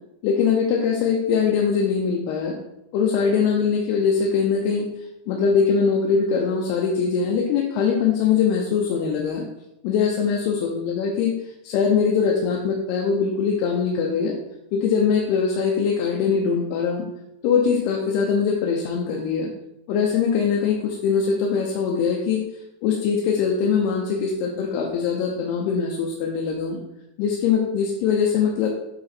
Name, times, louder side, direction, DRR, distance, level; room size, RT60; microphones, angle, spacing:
voice 1, 0.2-2.6 2.9-4.9 5.3-9.4 9.8-11.3 11.6-14.4 14.7-17.1 17.4-19.5 19.9-22.4 22.8-26.8 27.2-28.7, left 6 dB, 80° left, 0 dB, 2.7 m, -22 dB
8.7 x 3.9 x 4.2 m, 0.89 s
omnidirectional pair, 4.8 m